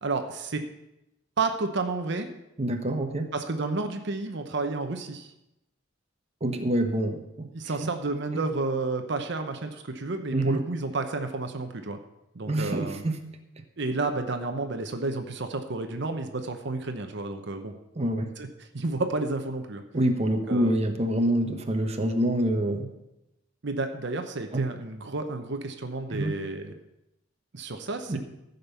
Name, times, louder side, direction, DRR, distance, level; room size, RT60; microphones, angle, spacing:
voice 1, 0.0-0.6 1.4-2.3 3.3-5.3 7.5-12.0 12.3-13.0 13.8-17.7 18.4-19.8 20.2-20.8 23.6-26.7 27.5-28.2, right 3 dB, 65° right, 6 dB, 0.9 m, -31 dB
voice 2, 2.6-3.3 6.4-7.5 7.8-7.9 8.3-8.4 10.3-10.6 12.5-13.2 18.0-18.3 19.9-22.9 24.5-24.7 26.1-26.4 28.1-28.2, right 1 dB, 35° right, 5 dB, 1.0 m, -26 dB
14.5 x 5.4 x 6.9 m, 0.90 s
head